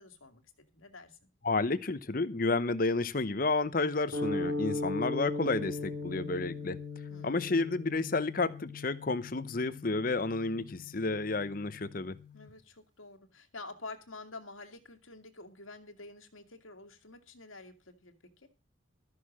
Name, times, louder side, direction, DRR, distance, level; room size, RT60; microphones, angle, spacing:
voice 1, 0.0-1.3 7.1-7.5 12.3-18.5, left 3 dB, 90° left, 2.3 m, -49 dB
voice 2, 1.4-6.8 7.2-12.2, left 3 dB, 45° left, 0.8 m, -31 dB
sound 1, 4.1-12.5, left 2 dB, 65° right, 4.9 m, -39 dB
13.0 x 6.5 x 7.3 m
head